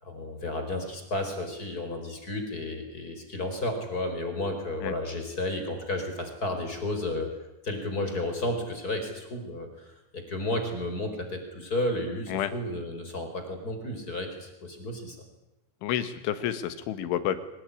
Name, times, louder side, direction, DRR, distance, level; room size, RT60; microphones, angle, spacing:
voice 1, 0.0-7.3 7.6-15.2, left 1 dB, 20° left, 6 dB, 4.6 m, -32 dB
voice 2, 15.8-17.4, left 11 dB, 80° left, 12 dB, 4.1 m, -29 dB
24.5 x 19.5 x 10.0 m, 0.97 s
omnidirectional pair, 5.4 m